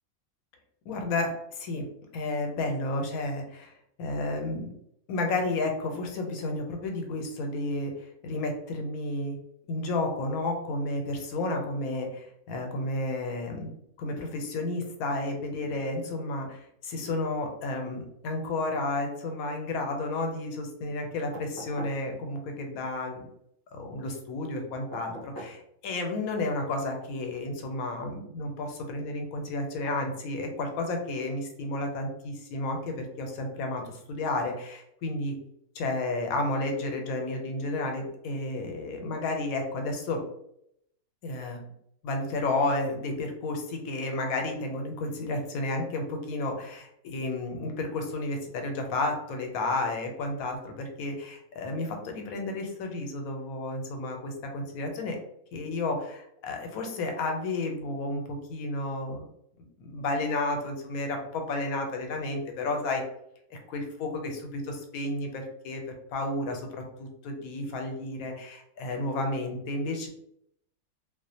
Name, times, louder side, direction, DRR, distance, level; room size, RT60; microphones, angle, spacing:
voice 1, 0.9-1.9 2.1-4.8 5.1-9.4 9.7-23.2 23.7-35.3 35.7-40.2 41.2-41.6 42.0-55.2 55.5-59.3 59.8-63.0 63.5-65.8 66.1-66.7 67.0-70.1, left 2 dB, 85° left, 3 dB, 1.0 m, -32 dB
sound 1, 21.3-22.0 24.9-25.6 27.2-27.3, equal, 30° left, 0.4 m, -41 dB
2.4 x 2.0 x 2.6 m, 0.75 s
omnidirectional pair, 1.5 m